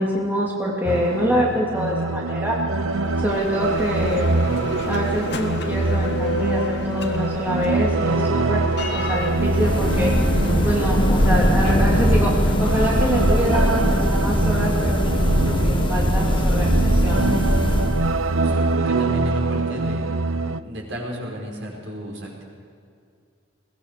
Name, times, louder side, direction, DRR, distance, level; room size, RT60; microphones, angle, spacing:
voice 1, 0.0-2.6 3.2-4.3 4.9-10.1 10.6-17.2, equal, 10° right, -4 dB, 2.8 m, -25 dB
sound 1, 0.8-20.6, right 3 dB, 90° right, 0.8 m, -24 dB
Bell, 2.6-14.5, left 2 dB, 55° left, 1.7 m, -32 dB
sound 2, 9.2-18.4, equal, 25° left, 1.5 m, -21 dB
voice 2, 18.3-20.1 20.6-22.4, equal, 70° right, -1 dB, 5.3 m, -33 dB
22.0 x 18.5 x 6.8 m, 2.3 s
head